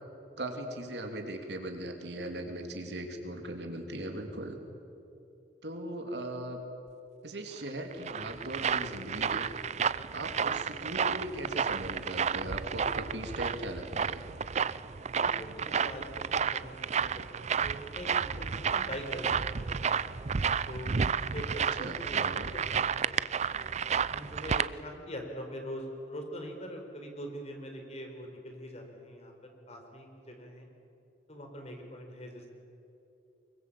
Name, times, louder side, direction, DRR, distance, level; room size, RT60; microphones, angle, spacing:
voice 1, 0.4-4.6 5.6-6.6 7.2-9.5 10.1-14.2 21.8-22.5, right 1 dB, 75° right, 4 dB, 3.1 m, -39 dB
sound 1, 7.7-24.7, right 6 dB, 40° right, 0.5 m, -31 dB
voice 2, 15.1-20.1 20.7-22.3 22.5-23.7 24.1-30.7 31.3-32.5, equal, 40° left, 3 dB, 4.3 m, -43 dB
24.5 x 22.5 x 8.6 m, 2.8 s
head